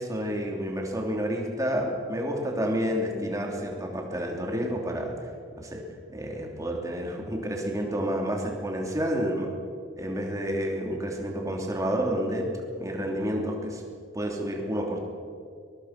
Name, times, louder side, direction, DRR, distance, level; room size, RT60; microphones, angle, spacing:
voice 1, 0.0-5.1 5.6-5.8 6.1-9.5 10.0-12.5 12.8-13.8 14.1-15.0, equal, 15° right, 1 dB, 3.1 m, -29 dB
22.5 x 22.0 x 6.0 m, 2.2 s
head